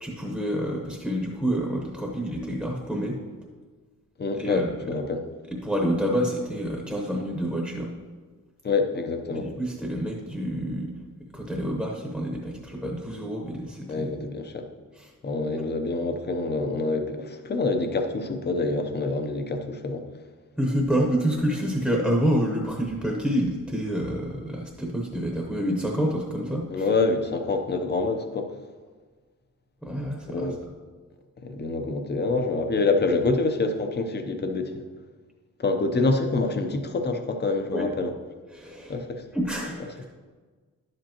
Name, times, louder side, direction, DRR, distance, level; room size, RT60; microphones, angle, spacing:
voice 1, 0.0-3.2 4.4-4.7 5.5-7.9 9.3-10.9 11.3-14.2 15.0-15.1 20.6-26.9 29.8-30.5 37.7-37.9 38.5-39.0 39.3-40.0, equal, ahead, 0 dB, 0.9 m, -28 dB
voice 2, 4.2-5.2 8.6-9.5 13.9-14.7 15.2-20.0 26.7-28.5 30.3-30.6 31.4-34.8 35.6-38.1 38.9-39.2, left 3 dB, 35° left, 6 dB, 0.7 m, -26 dB
11.0 x 7.9 x 2.9 m, 1.4 s
wide cardioid pair, 175°, 32 cm